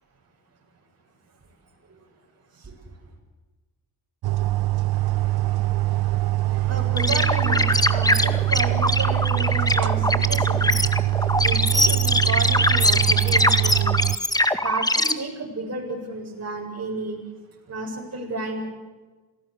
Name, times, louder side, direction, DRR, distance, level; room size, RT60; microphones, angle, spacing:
sound 1, 4.2-14.2, right 17 dB, 75° right, 0.7 m, -23 dB
voice 1, 4.9-14.1 14.6-17.2 17.7-18.7, right 2 dB, 40° right, -1 dB, 7.5 m, -33 dB
sound 2, 7.0-15.1, left 1 dB, 10° left, 1.9 m, -22 dB
26.5 x 18.0 x 8.5 m, 1.3 s
cardioid pair, 70°, 38 cm